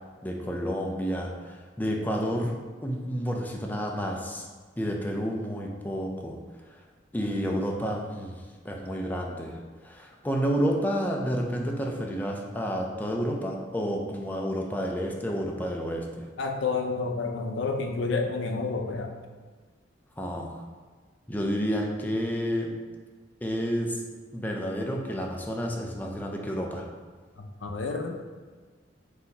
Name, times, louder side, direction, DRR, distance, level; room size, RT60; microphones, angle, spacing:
voice 1, 0.2-2.5 2.8-4.4 4.8-6.4 7.1-8.4 8.6-9.6 9.8-16.2 20.2-20.6 21.3-22.7 23.4-24.0 24.3-26.8, equal, 10° left, 0 dB, 0.5 m, -30 dB
voice 2, 16.4-19.1 27.4-28.2, left 4 dB, 80° left, 3 dB, 0.5 m, -29 dB
4.0 x 2.7 x 4.0 m, 1.5 s
head